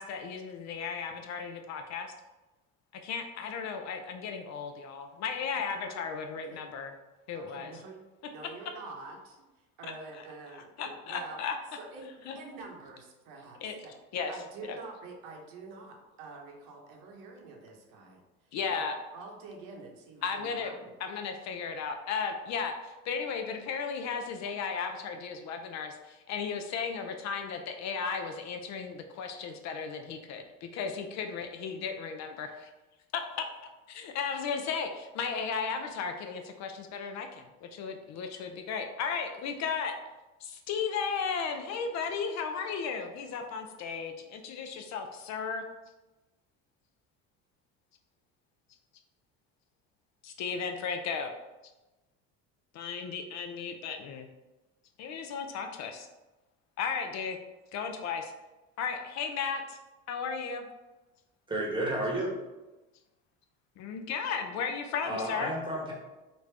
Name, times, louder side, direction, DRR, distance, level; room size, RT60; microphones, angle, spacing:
voice 1, 0.0-2.1 3.0-6.9 7.3-7.7 9.8-10.2 10.5-11.6 12.3-12.4 13.6-13.7 14.1-14.3 14.7-14.8 18.5-19.0 20.2-20.7 21.0-32.7 33.1-33.4 33.9-39.9 40.4-45.6 50.2-51.3 52.7-54.3 55.0-56.1 56.8-57.4 57.7-58.3 58.8-59.8 60.1-60.7 63.8-65.5, left 6 dB, 50° left, 5 dB, 0.5 m, -35 dB
voice 2, 5.5-6.0 6.5-6.6 7.3-8.0 8.3-9.4 9.8-11.4 11.8-13.9 14.3-18.2 18.6-20.9, right 3 dB, 70° right, 1 dB, 0.8 m, -46 dB
voice 3, 61.5-62.3 65.1-65.9, right 1 dB, 15° right, -2 dB, 1.1 m, -31 dB
3.2 x 2.6 x 3.2 m, 1.1 s
supercardioid pair, 90°, 35 cm